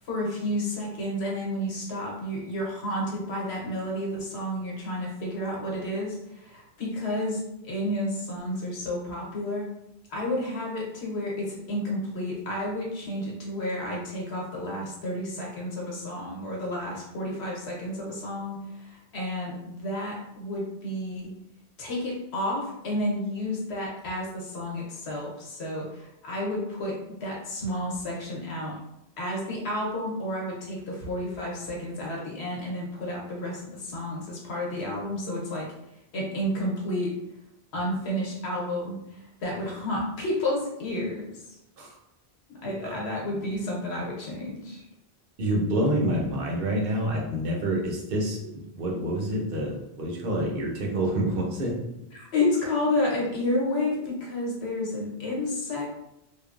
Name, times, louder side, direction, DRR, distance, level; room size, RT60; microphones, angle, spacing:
voice 1, 0.0-9.7 10.1-21.3 21.8-26.9 27.2-28.7 29.2-35.7 36.1-37.1 37.7-41.4 42.5-44.8 52.1-55.9, left 1 dB, 85° left, -2 dB, 1.1 m, -31 dB
voice 2, 45.4-51.7, right 1 dB, 65° right, 0 dB, 0.8 m, -27 dB
3.1 x 2.0 x 2.4 m, 0.85 s
omnidirectional pair, 1.1 m